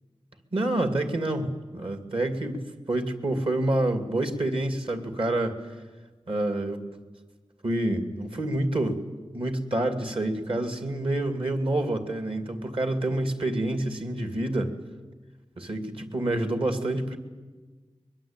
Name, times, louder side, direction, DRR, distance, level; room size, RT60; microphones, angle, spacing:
voice 1, 0.5-5.6 6.3-6.9 7.6-9.0 9.3-14.7 15.6-17.2, right 1 dB, 60° right, 7 dB, 2.7 m, -27 dB
23.0 x 22.0 x 9.0 m, 1.4 s
wide cardioid pair, 80°, 11 cm